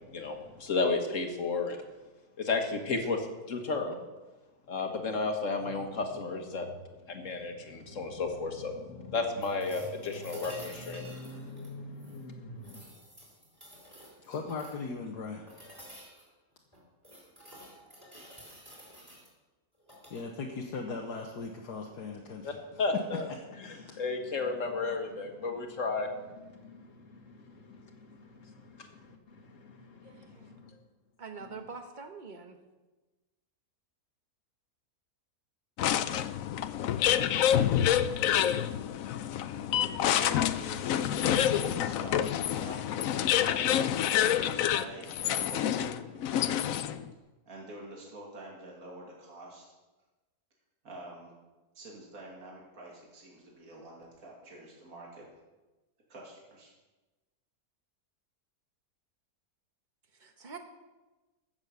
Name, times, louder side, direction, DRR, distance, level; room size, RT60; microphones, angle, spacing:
voice 1, 0.1-1.8 2.4-4.0 4.7-6.7 7.1-12.8 22.4-23.3 23.7-29.2 29.4-30.6, left 3 dB, 55° left, 4 dB, 1.8 m, -34 dB
sound 1, 9.4-12.2 12.6-14.9 15.5-16.3 16.7-19.3 19.8-20.2 22.3-22.4, equal, 15° right, 3.7 m, -51 dB
voice 2, 14.2-15.5 20.1-22.6 23.6-24.0, left 4 dB, 85° left, 0 dB, 1.7 m, -38 dB
voice 3, 30.0-30.5 31.2-32.6 60.1-60.6, right 5 dB, 35° right, 6 dB, 1.2 m, -45 dB
sound 2, 35.8-47.1, left 10 dB, 70° left, 0.9 m, -28 dB
voice 4, 39.7-42.8 43.0-46.6 47.5-49.7 50.8-51.3 51.7-55.2 56.1-56.7, right 1 dB, 60° right, -3 dB, 2.7 m, -47 dB
15.5 x 7.1 x 6.8 m, 1.2 s
omnidirectional pair, 1.6 m